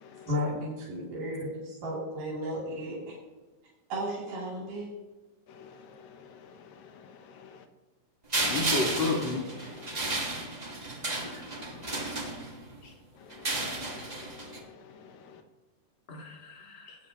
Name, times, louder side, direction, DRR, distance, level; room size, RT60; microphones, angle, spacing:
voice 1, 0.3-3.2 3.9-4.9, equal, 90° right, -4 dB, 4.5 m, -34 dB
voice 2, 5.6-7.6 9.7-10.1 11.8-11.9 13.3-13.5 14.2-15.4, left 6 dB, 70° left, 7 dB, 2.1 m, -51 dB
sound 1, 8.3-12.8 13.3-14.6, right 2 dB, 60° right, 0.4 m, -33 dB
voice 3, 8.4-9.5 11.2-11.4 16.1-17.0, left 3 dB, 25° left, 0 dB, 1.4 m, -32 dB
19.0 x 8.6 x 3.0 m, 1.2 s
omnidirectional pair, 3.7 m